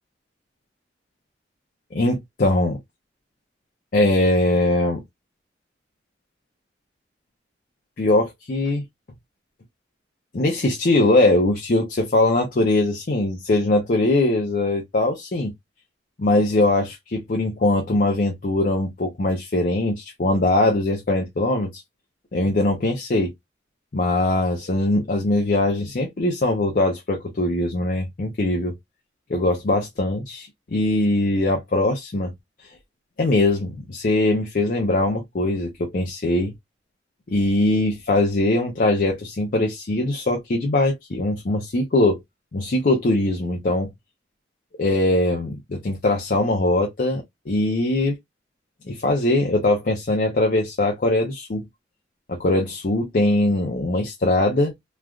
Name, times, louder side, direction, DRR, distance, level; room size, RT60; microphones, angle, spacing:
voice 1, 1.9-2.8 3.9-5.0 8.0-8.8 10.3-15.5 16.2-21.8 22.3-23.3 23.9-28.7 29.3-32.3 33.2-36.5 37.3-42.2 42.5-43.9 44.8-48.1 48.8-51.6 52.3-54.7, left 2 dB, 50° left, 0.6 m, -21 dB
3.1 x 2.3 x 2.3 m
head